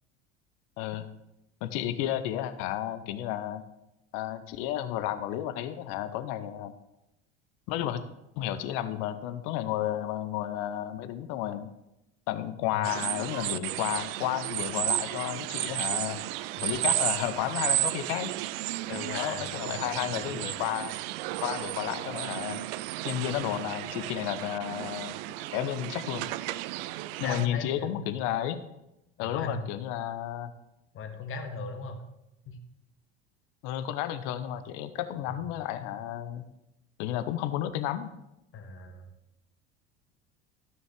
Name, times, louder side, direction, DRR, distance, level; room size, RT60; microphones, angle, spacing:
voice 1, 0.8-1.1 1.6-3.6 4.1-6.7 7.7-8.0 8.4-11.7 12.3-18.3 18.9-20.9 21.4-22.7 23.0-25.2 25.5-26.3 27.2-28.6 29.2-30.5 33.6-36.4 37.0-38.1, left 12 dB, 55° left, 11 dB, 0.8 m, -32 dB
sound 1, 12.8-27.5, right 17 dB, 60° right, 0.4 m, -33 dB
voice 2, 18.9-20.6 27.2-28.0 29.2-29.8 30.9-32.0 32.5-32.6 38.5-39.1, left 4 dB, 40° left, 6 dB, 1.5 m, -39 dB
13.0 x 6.2 x 3.7 m, 0.88 s
figure-of-eight pair, 70°, 33 cm